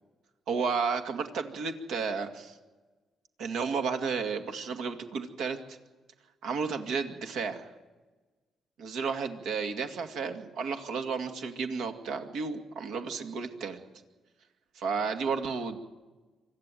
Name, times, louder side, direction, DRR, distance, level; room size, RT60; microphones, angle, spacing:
voice 1, 0.5-2.6 3.4-5.8 6.4-7.6 8.8-13.8 14.8-15.8, right 5 dB, 85° right, 5 dB, 2.2 m, -32 dB
25.0 x 13.5 x 9.2 m, 1.2 s
cardioid pair, 90°, 0 cm